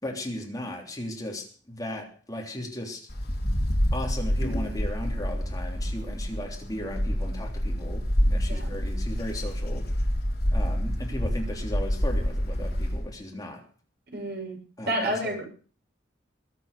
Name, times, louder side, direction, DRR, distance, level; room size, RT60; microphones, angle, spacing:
voice 1, 0.0-3.1 3.9-9.9 10.5-13.6 14.8-15.4, left 1 dB, 20° left, 1 dB, 3.3 m, -36 dB
Wind, 3.1-13.1, equal, 55° left, 3.8 m, -27 dB
voice 2, 14.1-14.6 14.9-15.4, right 1 dB, 60° right, 1 dB, 7.0 m, -29 dB
22.0 x 8.2 x 6.7 m, 0.41 s
head